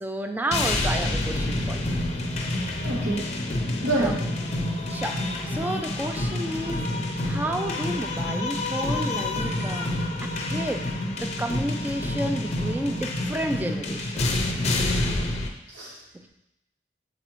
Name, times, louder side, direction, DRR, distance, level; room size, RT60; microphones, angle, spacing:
voice 1, 0.0-2.0 4.0-4.1 4.9-5.2 5.5-6.9 7.2-9.9 10.2-10.9 11.2-14.2 16.1-16.3, right 1 dB, 10° right, 5 dB, 0.4 m, -31 dB
sound 1, 0.5-15.5, left 1 dB, 35° left, 0.6 m, -28 dB
voice 2, 2.8-3.2 3.8-4.1 4.7-5.0 15.7-16.0, right 2 dB, 75° right, -6 dB, 1.0 m, -27 dB
7.7 x 4.1 x 3.0 m, 0.88 s
head